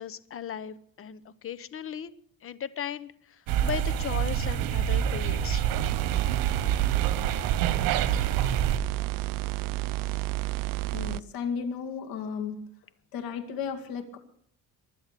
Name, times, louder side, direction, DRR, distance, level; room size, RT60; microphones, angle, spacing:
voice 1, 0.0-2.1 2.4-5.7 10.0-10.2, left 9 dB, 40° left, 16 dB, 0.9 m, -37 dB
sound 1, 3.5-8.8, right 10 dB, 85° right, 1.4 m, -27 dB
sound 2, 5.7-11.2, right 19 dB, 70° right, 0.5 m, -32 dB
voice 2, 10.9-12.6 13.1-14.2, left 6 dB, 90° left, 5 dB, 2.4 m, -34 dB
23.0 x 7.9 x 6.8 m, 0.66 s
cardioid pair, 135°, 34 cm